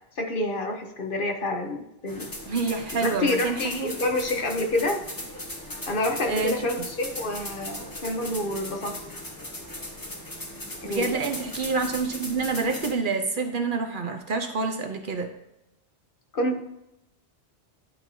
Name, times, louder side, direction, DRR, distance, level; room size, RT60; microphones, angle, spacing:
voice 1, 0.2-2.3 3.0-5.0 5.9-9.0 10.8-11.1 16.3-16.6, left 1 dB, 55° left, 3 dB, 1.1 m, -28 dB
sound 1, 2.1-12.9, left 1 dB, 20° left, 1.1 m, -38 dB
voice 2, 2.5-4.0 6.2-6.5 10.8-15.3, right 4 dB, 55° right, 5 dB, 0.9 m, -27 dB
11.5 x 4.6 x 2.7 m, 0.85 s
omnidirectional pair, 1.1 m